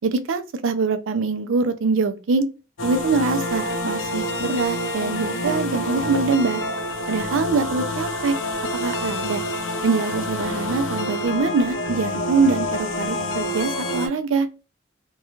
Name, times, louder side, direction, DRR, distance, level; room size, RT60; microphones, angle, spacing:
voice 1, 0.0-2.5 2.8-6.6 7.1-8.4 8.7-9.4 9.8-14.5, right 4 dB, 75° right, 0.4 m, -23 dB
sound 1, 2.8-14.1, left 1 dB, 70° left, 0.5 m, -27 dB
2.3 x 2.3 x 2.9 m
head